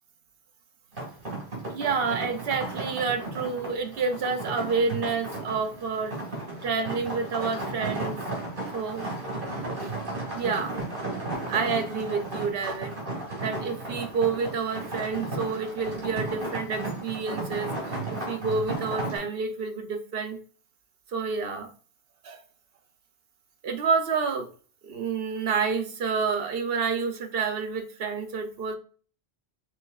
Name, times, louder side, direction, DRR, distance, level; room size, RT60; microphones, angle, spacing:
sound 1, 0.9-19.2, right 2 dB, 50° right, 2.2 m, -34 dB
voice 1, 1.7-6.2 6.6-8.2 8.7-9.1 9.8-9.9 10.3-10.7 11.5-12.9 13.4-17.7 18.1-20.4 21.1-21.7 22.2-22.4 23.6-24.5 24.8-28.7, right 5 dB, 65° right, 7 dB, 0.9 m, -29 dB
6.4 x 3.5 x 2.3 m, 0.41 s
omnidirectional pair, 1.1 m